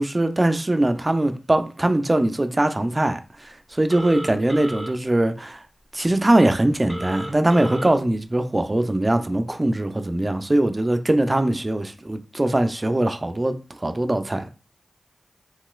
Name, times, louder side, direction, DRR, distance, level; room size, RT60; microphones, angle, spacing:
voice 1, 0.0-5.6 5.9-14.4, right 1 dB, 30° right, 0.4 m, -21 dB
Telephone, 3.9-4.9 6.9-7.9, equal, 25° left, 1.4 m, -33 dB
3.0 x 2.9 x 2.3 m
cardioid pair, 45°, 0 cm